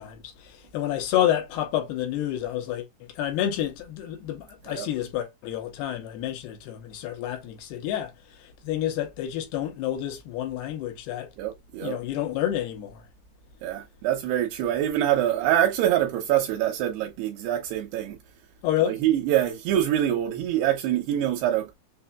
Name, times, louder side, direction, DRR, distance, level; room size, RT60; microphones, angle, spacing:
voice 1, 0.0-2.9 3.2-8.1 8.4-11.3 11.8-13.0 18.6-19.0, left 12 dB, 80° left, 3.0 m, -29 dB
voice 2, 11.4-12.0 13.6-18.2 18.8-21.7, right 11 dB, 80° right, 2.7 m, -25 dB
6.7 x 2.7 x 2.3 m
omnidirectional pair, 4.6 m